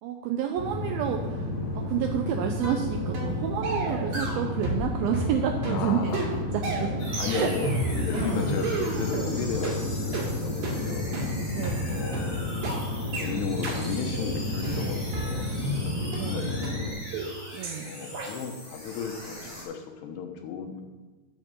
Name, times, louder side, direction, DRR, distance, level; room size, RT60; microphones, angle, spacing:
voice 1, 0.0-1.5 1.7-6.2 6.5-7.5 11.5-11.9 16.1-16.5 17.5-17.9, right 9 dB, 90° right, 4 dB, 2.1 m, -30 dB
sound 1, 0.6-16.9, left 1 dB, 50° left, 5.2 m, -32 dB
sound 2, 2.6-2.8 3.1-3.3 3.6-4.9 5.1-9.3 9.6-9.8 10.1-10.3 10.6-10.8 11.1-11.3 11.6-11.8 12.1-12.3 12.6-12.8 13.1-13.3 13.6-13.8 14.1-14.3 14.6-15.8 16.1-16.2 16.6-16.7 17.1-17.3 17.6-17.8 18.1-18.3, right 2 dB, 60° right, 4.0 m, -31 dB
voice 2, 5.7-6.3 7.2-11.3 11.9-12.5 12.9-17.0 17.8-20.8, left 6 dB, 75° left, 4 dB, 3.0 m, -35 dB
sound 3, 7.0-19.6, left 1 dB, 20° left, 4.3 m, -42 dB
10.5 x 6.3 x 6.7 m, 1.2 s
omnidirectional pair, 5.0 m